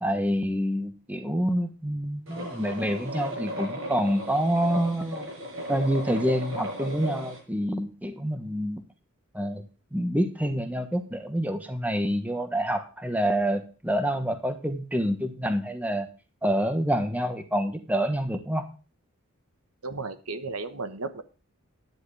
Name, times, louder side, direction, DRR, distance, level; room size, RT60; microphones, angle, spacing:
voice 1, 0.0-5.3 5.7-8.8 9.3-9.6 9.9-16.1 16.4-18.6, equal, 5° right, 7 dB, 1.3 m, -27 dB
sound 1, 2.3-7.4, equal, 60° right, 5.9 m, -35 dB
voice 2, 19.8-21.2, right 3 dB, 80° right, 10 dB, 1.3 m, -34 dB
10.5 x 10.5 x 3.4 m, 0.35 s
head